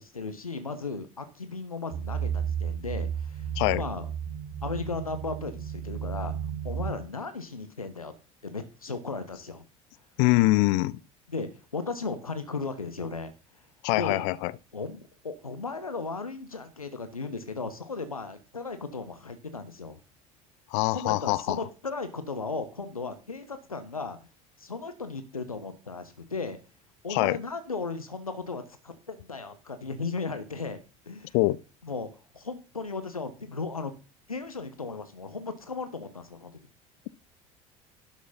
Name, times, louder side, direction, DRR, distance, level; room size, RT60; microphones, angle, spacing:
voice 1, 0.0-3.5 3.7-4.1 4.6-6.3 6.6-8.1 8.4-9.6 11.3-13.3 13.9-14.3 14.7-20.0 20.9-24.2 24.6-26.6 27.0-30.8 31.1-31.4 31.8-32.1 32.3-33.9 34.3-36.5, left 4 dB, 85° left, 1.0 m, -36 dB
sound 1, 1.9-6.9, right 8 dB, 65° right, 3.2 m, -33 dB
voice 2, 10.2-11.0 13.8-14.5 20.7-21.6 27.1-27.4 31.3-31.6, left 20 dB, 55° left, 0.6 m, -24 dB
12.0 x 6.3 x 5.4 m
figure-of-eight pair, 65°, 18 cm